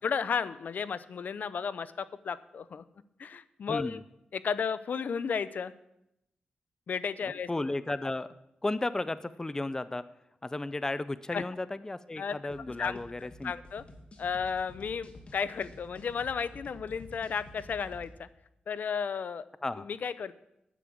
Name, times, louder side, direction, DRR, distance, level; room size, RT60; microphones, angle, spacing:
voice 1, 0.0-2.8 3.2-4.0 4.3-5.7 6.9-7.5 11.3-11.4 12.2-13.0 13.4-13.8 14.2-18.3 18.7-19.5 19.8-20.4, left 6 dB, 65° left, 15 dB, 0.6 m, -33 dB
voice 2, 3.7-4.0 7.2-8.3 8.6-10.1 10.4-13.5 19.6-19.9, left 2 dB, 20° left, 15 dB, 0.5 m, -34 dB
sound 1, 12.5-18.0, left 1 dB, 40° left, 2.2 m, -50 dB
9.9 x 7.5 x 8.5 m, 0.83 s
cardioid pair, 80°, 3 cm